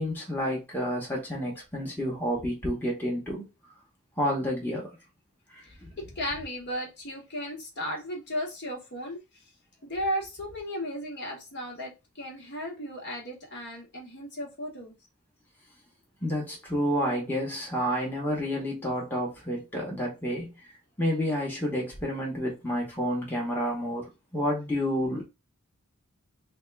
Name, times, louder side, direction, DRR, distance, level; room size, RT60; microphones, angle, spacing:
voice 1, 0.0-3.5 4.2-5.0 5.5-5.9 16.2-20.5 21.0-24.1 24.3-25.2, equal, 10° left, 1.0 m, -30 dB
voice 2, 5.6-9.4 9.8-15.0, equal, 50° left, 1.2 m, -35 dB
3.5 x 2.3 x 3.3 m
head